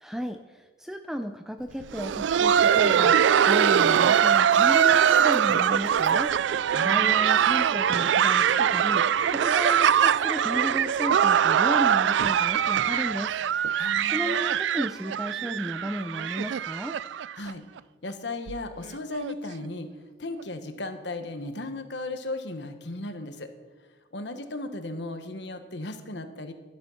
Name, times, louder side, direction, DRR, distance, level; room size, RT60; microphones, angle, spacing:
voice 1, 0.0-6.3 6.8-9.1 9.3-13.6 14.1-17.0, equal, ahead, 7 dB, 0.4 m, -34 dB
Laughter, 1.8-17.5 17.8-17.9 18.5-18.6 19.1-19.3 20.4-20.5, right 8 dB, 70° right, 0.3 m, -22 dB
sound 1, 5.4-12.2 12.5-12.6, equal, 35° right, 3.9 m, -45 dB
voice 2, 6.7-7.4 13.8-14.4 17.4-17.6 18.0-19.9 20.2-23.5 24.1-26.5, left 2 dB, 65° left, 8 dB, 1.3 m, -36 dB
13.0 x 11.5 x 5.7 m, 1.3 s
head